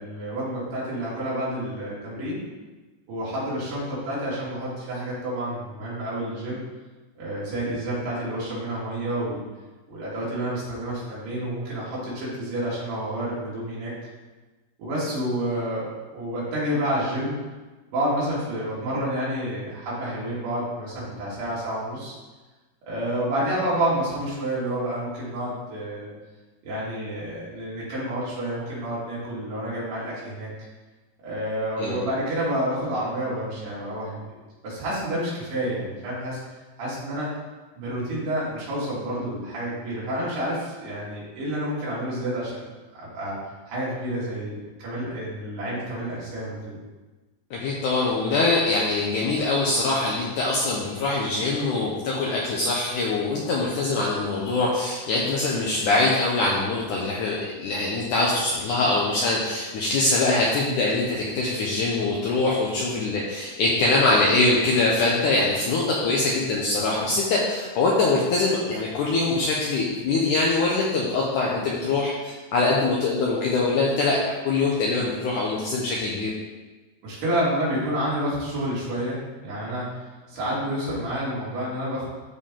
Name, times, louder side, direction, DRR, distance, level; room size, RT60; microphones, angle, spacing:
voice 1, 0.0-2.4 3.1-6.6 7.2-9.4 9.9-13.9 14.8-17.4 17.9-22.2 22.9-26.1 26.6-30.5 31.2-34.2 34.6-36.4 36.8-37.3 37.7-42.7 42.9-43.4 43.7-46.8 77.0-82.1, right 1 dB, 80° right, -8 dB, 4.7 m, -29 dB
voice 2, 47.5-76.3, left 3 dB, 75° left, -4 dB, 1.9 m, -23 dB
12.5 x 4.5 x 3.8 m, 1.2 s
omnidirectional pair, 4.6 m